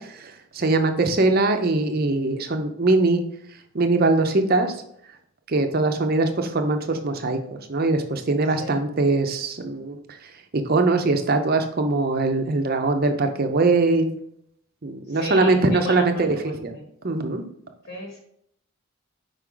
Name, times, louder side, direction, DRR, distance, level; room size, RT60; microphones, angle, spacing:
voice 1, 0.0-3.2 3.7-4.7 5.5-10.0 10.5-14.1 14.8-16.4 16.6-16.7 17.0-17.4, right 3 dB, 45° right, 6 dB, 0.6 m, -22 dB
voice 2, 8.5-8.8 15.1-16.8 17.8-18.2, left 2 dB, 60° left, 1 dB, 1.2 m, -35 dB
5.2 x 4.7 x 3.8 m, 0.70 s
head